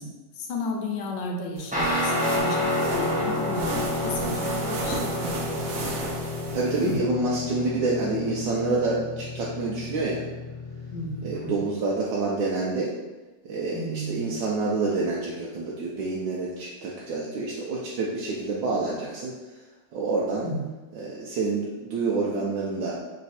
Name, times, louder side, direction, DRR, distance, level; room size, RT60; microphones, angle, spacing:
voice 1, 0.0-5.9 6.8-7.0 10.9-11.6 13.7-14.4 20.4-20.7, left 1 dB, 85° left, 2 dB, 1.3 m, -34 dB
sound 1, 1.6-7.0, right 2 dB, 65° right, 0.9 m, -36 dB
Guitar, 1.7-11.4, left 1 dB, 10° right, 0.3 m, -29 dB
voice 2, 6.5-10.2 11.2-12.9 13.4-19.3 19.9-20.4 20.9-23.0, right 3 dB, 90° right, -5 dB, 1.4 m, -27 dB
3.4 x 3.1 x 4.1 m, 1.2 s
omnidirectional pair, 1.9 m